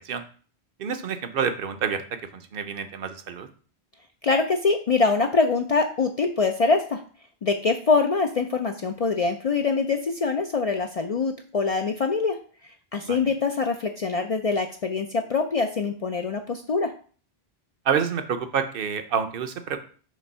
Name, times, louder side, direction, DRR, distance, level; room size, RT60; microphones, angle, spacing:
voice 1, 0.8-2.0 2.3-3.5 13.1-13.2 17.9-19.8, right 7 dB, 65° right, 9 dB, 0.8 m, -28 dB
voice 2, 4.2-7.0 7.4-12.4 12.9-16.9, left 4 dB, 50° left, 4 dB, 0.4 m, -24 dB
5.1 x 3.4 x 5.4 m, 0.41 s
omnidirectional pair, 1.1 m